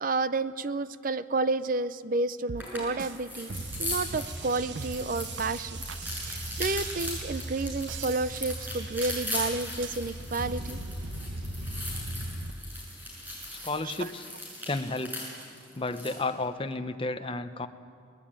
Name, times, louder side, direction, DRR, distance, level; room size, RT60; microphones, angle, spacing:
voice 1, 0.0-3.5 3.8-5.8 6.3-10.8 14.0-14.1, right 3 dB, 45° right, 15 dB, 0.6 m, -30 dB
sound 1, 2.5-3.2 3.5-3.8 4.1-4.4 4.7-5.0 5.4-5.5 5.9-6.0 6.6-7.2 7.9-8.6 9.0-9.3 9.8-9.9, right 6 dB, 85° right, 0.7 m, -42 dB
sound 2, 2.6-16.2, left 1 dB, 10° right, 6.9 m, -39 dB
sound 3, 3.5-12.5, right 1 dB, 65° right, 1.5 m, -38 dB
voice 2, 13.6-14.3 14.7-15.3 15.7-17.7, left 2 dB, 30° left, 9 dB, 0.9 m, -32 dB
23.0 x 19.0 x 8.9 m, 2.2 s
head